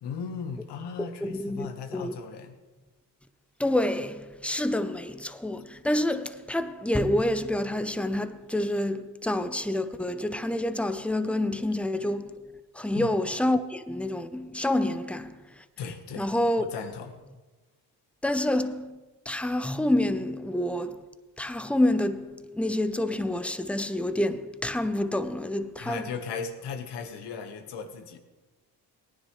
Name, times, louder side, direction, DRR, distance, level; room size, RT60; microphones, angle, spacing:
voice 1, 0.0-2.6 12.9-13.1 15.8-16.3 16.6-17.2 25.8-28.2, left 6 dB, 80° left, 1.4 m, -37 dB
voice 2, 1.0-2.2 3.6-15.6 16.2-16.6 18.2-19.0 19.3-21.1 21.4-26.0, left 1 dB, 5° left, 0.6 m, -28 dB
18.0 x 9.8 x 3.2 m
cardioid pair, 80°, 41 cm